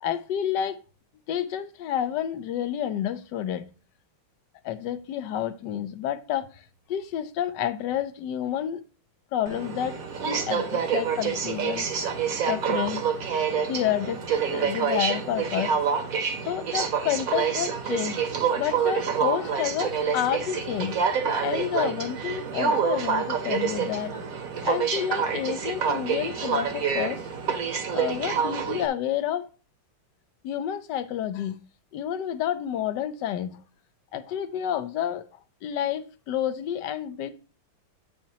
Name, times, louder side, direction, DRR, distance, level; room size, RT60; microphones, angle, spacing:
voice 1, 0.0-0.8 1.3-3.6 4.6-6.6 6.9-8.8 9.3-10.0 10.2-11.9 12.5-13.1 13.7-14.2 14.5-15.7 16.4-18.2 18.6-20.9 21.4-24.1 24.6-27.2 27.9-29.4 30.4-31.6 31.9-33.6 34.1-35.3 35.6-37.3, left 10 dB, 65° left, 1.3 m, -29 dB
Aircraft, 9.5-28.9, right 6 dB, 50° right, 1.3 m, -27 dB
9.1 x 7.3 x 2.8 m
omnidirectional pair, 2.2 m